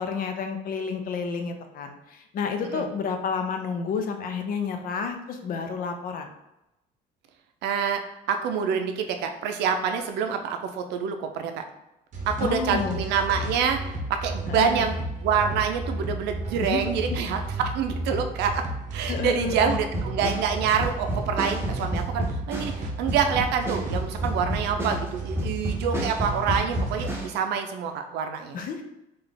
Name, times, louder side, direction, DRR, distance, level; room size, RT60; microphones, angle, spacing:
voice 1, 0.0-6.3 12.4-13.0 14.4-14.9 16.6-16.8 17.1-17.2 19.1-19.8 25.9-26.0 28.5-28.8, left 5 dB, 60° left, 6 dB, 0.5 m, -30 dB
voice 2, 7.6-8.0 8.3-11.6 12.3-13.8 14.1-14.9 15.2-18.6 18.9-28.6, right 7 dB, 85° right, 6 dB, 0.5 m, -26 dB
sound 1, 12.1-27.2, right 1 dB, 45° right, 0.8 m, -33 dB
sound 2, 19.9-27.4, right 1 dB, 15° right, 0.7 m, -31 dB
3.3 x 2.4 x 3.8 m, 0.88 s
cardioid pair, 110°, 17 cm